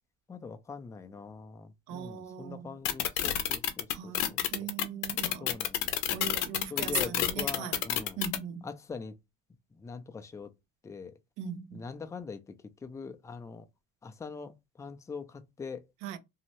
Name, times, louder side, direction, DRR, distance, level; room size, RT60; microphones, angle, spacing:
voice 1, 0.3-4.7 5.4-6.2 6.7-8.2 8.6-9.1 9.8-10.5 10.8-11.1 11.7-13.6 14.0-15.8, left 5 dB, 10° left, 0.3 m, -43 dB
voice 2, 1.9-2.7 3.9-5.6 6.1-7.8 8.2-8.7 11.4-11.8 16.0-16.2, right 8 dB, 75° right, 0.6 m, -39 dB
sound 1, 2.8-8.4, left 11 dB, 90° left, 0.6 m, -28 dB
2.7 x 2.0 x 2.9 m
cardioid pair, 115°, 32 cm